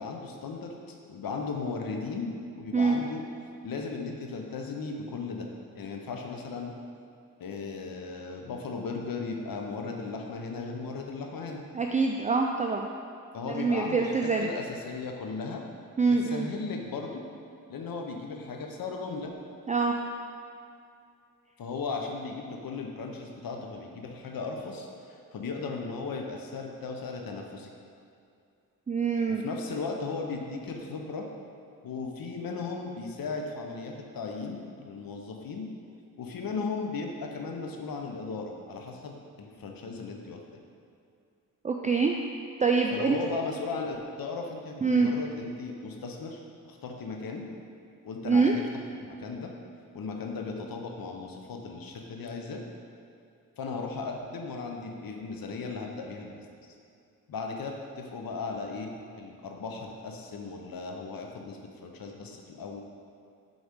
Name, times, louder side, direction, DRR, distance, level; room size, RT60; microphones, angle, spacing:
voice 1, 0.0-3.2 3.6-5.5 5.7-6.7 7.4-11.6 13.3-15.6 16.0-17.2 17.7-19.3 21.6-27.7 29.3-31.3 31.8-35.7 36.2-40.4 42.9-46.4 46.6-47.5 48.0-48.6 49.2-49.5 49.9-52.6 53.6-56.4 57.3-58.9 59.2-62.8, left 4 dB, 75° left, 2 dB, 0.7 m, -36 dB
voice 2, 11.7-12.9 13.5-14.5 16.0-16.5 19.7-19.9 28.9-29.4 41.6-42.2 42.6-43.2 44.8-45.1 48.3-48.5, right 4 dB, 20° right, 2 dB, 0.4 m, -25 dB
4.6 x 4.0 x 5.1 m, 2.4 s
cardioid pair, 45°, 35 cm